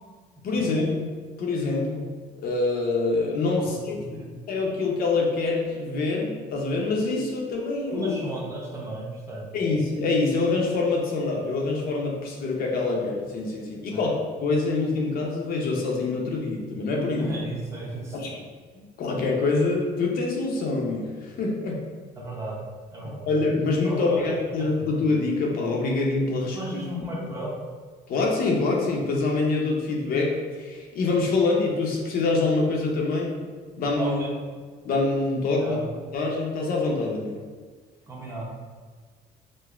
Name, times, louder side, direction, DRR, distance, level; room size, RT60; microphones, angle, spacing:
voice 1, 0.4-1.1 1.4-2.0 2.4-4.0 4.5-8.1 9.5-14.1 14.4-17.3 18.1-18.4 18.7-21.8 23.0-26.6 28.1-33.4 33.8-34.2 34.8-35.8 36.1-37.4, left 3 dB, 60° left, -1 dB, 0.7 m, -25 dB
voice 2, 3.6-4.3 7.9-9.5 13.9-14.1 17.2-18.2 22.2-22.6 22.9-23.3 23.8-24.9 26.4-27.5 33.9-34.3 35.5-35.9 38.1-38.6, right 1 dB, 15° right, -4 dB, 0.8 m, -34 dB
5.0 x 2.0 x 2.4 m, 1.5 s
cardioid pair, 110°, 17 cm